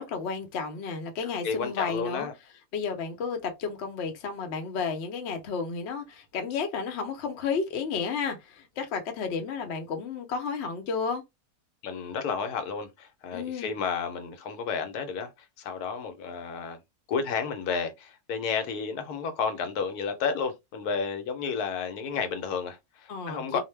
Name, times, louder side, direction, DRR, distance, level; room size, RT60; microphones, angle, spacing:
voice 1, 0.0-2.3 2.7-11.2 13.3-13.7 23.1-23.6, left 5 dB, 55° left, 0.8 m, -32 dB
voice 2, 1.4-2.3 11.8-15.3 15.6-16.8 17.1-23.6, left 6 dB, 80° left, 1.1 m, -31 dB
2.5 x 2.1 x 3.2 m
omnidirectional pair, 1.6 m